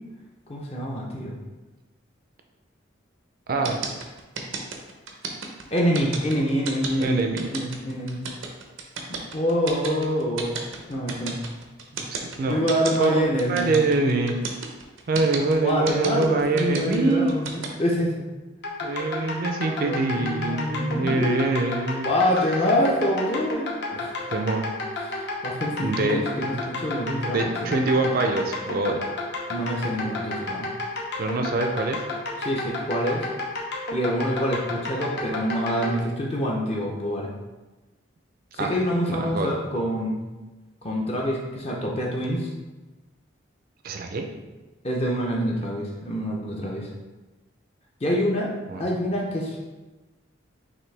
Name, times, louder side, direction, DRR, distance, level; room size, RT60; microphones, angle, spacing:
voice 1, 0.5-1.3 5.7-7.2 7.5-8.2 9.1-10.5 10.9-11.4 12.5-13.7 15.6-18.1 19.2-19.3 19.6-21.4 22.0-24.2 25.1-27.8 29.5-30.7 32.4-33.3 33.9-37.3 38.5-40.2 40.8-42.5 44.8-46.9 48.0-49.6, equal, 30° left, -2 dB, 0.6 m, -26 dB
voice 2, 3.5-3.8 7.0-7.5 12.1-12.6 13.0-13.2 13.5-14.4 15.1-17.4 18.8-22.1 24.3-24.7 25.8-26.3 26.5-26.6 27.3-29.0 31.2-32.0 38.6-38.7 39.1-39.5 43.8-44.3 48.7-48.8, right 3 dB, 45° right, 4 dB, 0.4 m, -24 dB
sound 1, 3.6-17.7, right 5 dB, 85° right, 0.7 m, -32 dB
sound 2, 18.6-36.0, left 2 dB, 55° left, 0.9 m, -31 dB
5.9 x 2.6 x 3.3 m, 1.2 s
head